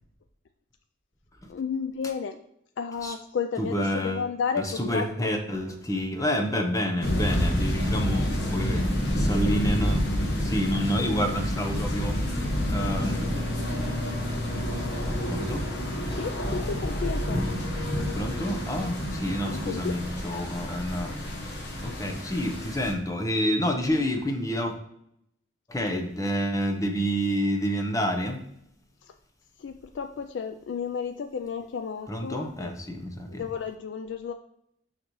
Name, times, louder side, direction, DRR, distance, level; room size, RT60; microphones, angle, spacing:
voice 1, 1.5-2.4 2.8-5.3 16.1-17.5 19.4-20.0 29.0-29.1 29.6-32.7 33.3-34.3, left 6 dB, 75° left, 8 dB, 0.4 m, -32 dB
voice 2, 3.6-4.2 4.6-13.3 15.3-15.7 18.1-21.2 21.8-24.8 25.7-28.4 32.1-33.4, equal, 15° left, 4 dB, 0.8 m, -29 dB
sound 1, 7.0-22.9, left 1 dB, 55° left, 1.4 m, -29 dB
sound 2, 10.5-20.6, equal, 55° right, 1.6 m, -46 dB
6.4 x 5.8 x 3.0 m, 0.74 s
head